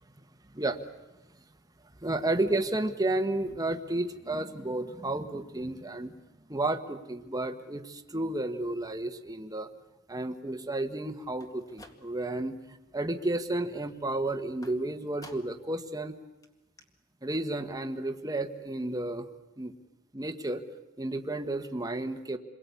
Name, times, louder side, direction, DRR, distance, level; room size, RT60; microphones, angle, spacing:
voice 1, 0.5-0.8 2.0-6.1 6.5-9.7 10.1-16.2 17.2-19.3 19.6-19.7 20.1-20.6 21.0-22.4, right 2 dB, 15° right, 8 dB, 1.5 m, -32 dB
sound 1, 11.3-12.5 12.8-13.3 14.6-15.7 16.1-16.2 16.4-16.5 16.8-16.9, left 1 dB, 15° left, 2.1 m, -53 dB
28.5 x 22.5 x 8.4 m, 1.1 s
head